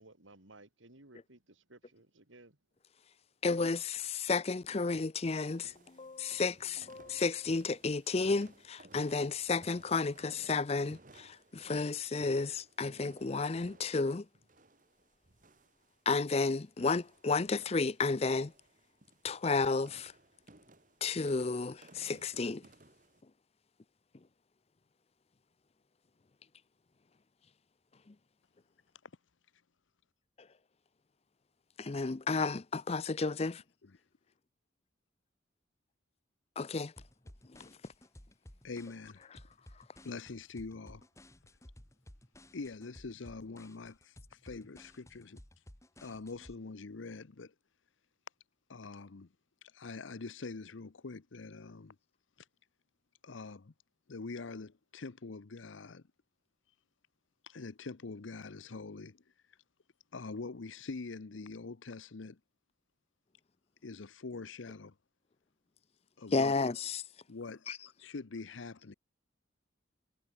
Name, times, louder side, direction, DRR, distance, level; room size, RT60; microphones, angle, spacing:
voice 1, 0.0-2.6, right 2 dB, 85° right, 3.3 m, -58 dB
voice 2, 3.4-14.3 16.1-18.5 19.2-20.1 21.0-22.7 28.1-28.2 30.4-30.5 31.8-33.6 36.6-36.9 37.5-37.7 66.3-67.0 67.7-67.8, left 4 dB, 30° left, 0.5 m, -32 dB
sound 1, 5.5-23.2, right 2 dB, 45° right, 2.2 m, -60 dB
sound 2, 37.0-46.6, left 1 dB, 15° left, 1.8 m, -56 dB
voice 3, 38.6-39.2 40.0-41.0 42.5-45.4 46.0-47.5 48.7-49.3 49.7-52.0 53.2-53.7 54.1-56.0 57.4-59.2 60.1-62.4 63.8-64.9 66.2-66.5 67.3-67.7 68.0-68.9, left 3 dB, 80° left, 0.8 m, -44 dB
head